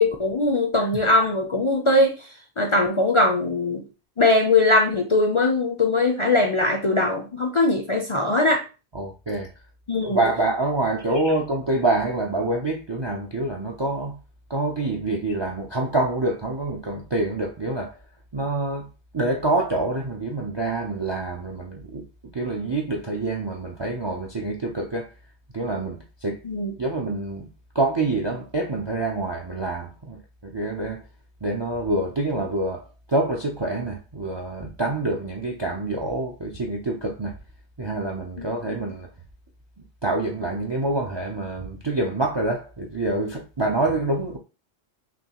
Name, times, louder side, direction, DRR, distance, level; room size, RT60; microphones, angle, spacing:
voice 1, 0.0-2.1 2.6-3.8 4.2-8.6 9.9-10.2 26.4-26.7 38.4-38.5 38.7-38.8, left 2 dB, 35° left, 0.5 m, -21 dB
voice 2, 8.9-9.5 10.0-14.2 14.5-18.0 18.3-18.9 19.1-25.1 25.5-26.4 26.8-31.0 31.4-37.3 37.8-39.1 40.0-44.4, right 2 dB, 35° right, 0.4 m, -26 dB
6.0 x 2.2 x 2.9 m
omnidirectional pair, 1.1 m